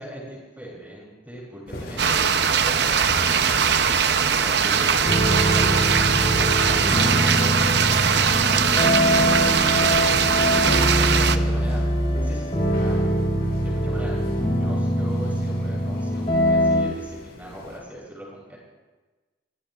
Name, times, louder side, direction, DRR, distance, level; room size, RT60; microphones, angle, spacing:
voice 1, 0.0-2.2 2.7-6.0 6.4-10.6 11.1-11.8 12.2-13.1 13.6-14.2 14.6-18.6, equal, 10° right, -5 dB, 7.1 m, -40 dB
sound 1, 1.7-17.8, left 1 dB, 55° left, 5.4 m, -40 dB
sound 2, 2.0-11.4, right 6 dB, 60° right, 0.7 m, -20 dB
sound 3, 5.0-16.8, equal, 30° left, 3.4 m, -23 dB
30.0 x 18.5 x 2.5 m, 1.2 s
head